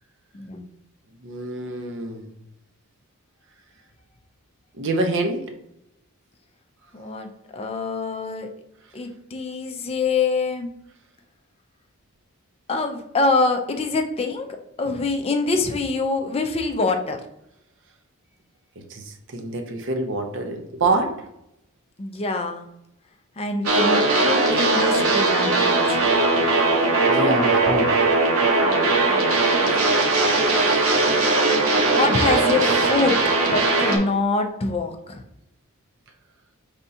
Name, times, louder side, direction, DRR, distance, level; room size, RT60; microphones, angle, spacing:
voice 1, 1.2-2.3 4.7-5.5 18.9-21.3 26.1-26.3 27.1-27.9 30.8-30.9, right 2 dB, 55° right, 4 dB, 0.7 m, -26 dB
voice 2, 6.9-8.5 8.9-10.7 12.7-17.3 22.0-22.7 23.4-26.0 29.1-29.3 31.8-33.2 33.5-35.2, left 3 dB, 25° left, 5 dB, 0.4 m, -25 dB
sound 1, 23.6-34.0, right 2 dB, 75° right, 1.1 m, -19 dB
5.4 x 3.5 x 2.7 m, 0.80 s
head